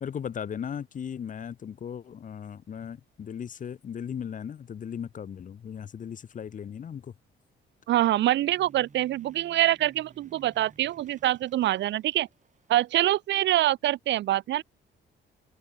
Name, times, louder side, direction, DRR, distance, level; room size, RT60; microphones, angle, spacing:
voice 1, 0.0-7.1, left 8 dB, 40° left, 0.7 m, -37 dB
voice 2, 7.9-12.3 12.7-14.6, right 14 dB, 65° right, 0.5 m, -25 dB
sound 1, 8.2-13.2, right 5 dB, 40° right, 5.3 m, -57 dB
cardioid pair, 90°, 20 cm